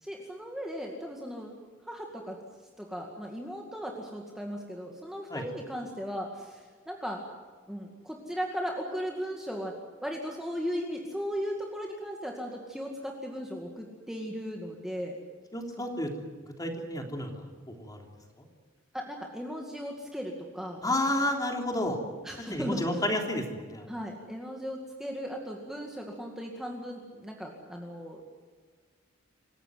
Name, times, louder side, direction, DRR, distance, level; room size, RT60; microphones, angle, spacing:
voice 1, 0.0-1.5 1.9-2.4 2.8-7.2 7.7-9.7 10.0-15.2 18.9-20.8 22.2-22.8 23.9-28.2, equal, ahead, 0 dB, 2.2 m, -37 dB
voice 2, 15.5-16.1 16.4-18.0 18.4-18.5 20.8-22.0 22.4-23.9, left 1 dB, 20° left, 2 dB, 3.4 m, -31 dB
27.0 x 16.0 x 9.3 m, 1.5 s
head